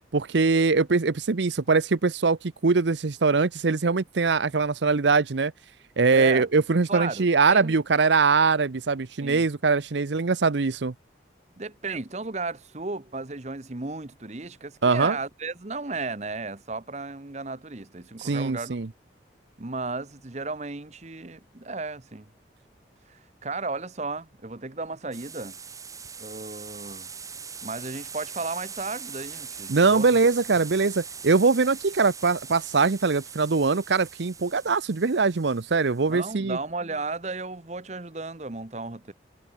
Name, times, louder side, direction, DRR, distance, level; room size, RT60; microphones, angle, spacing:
voice 1, 0.1-5.5 6.0-10.9 14.8-15.2 18.2-18.9 29.7-36.6, right 4 dB, 70° right, 0.7 m, -22 dB
voice 2, 6.1-6.5 6.9-7.8 9.2-9.5 11.6-18.8 19.6-22.3 23.1-25.6 26.2-27.1 27.6-30.2 36.1-39.1, right 3 dB, 35° right, 1.0 m, -34 dB
sound 1, 25.1-36.2, right 6 dB, 20° right, 1.8 m, -41 dB
head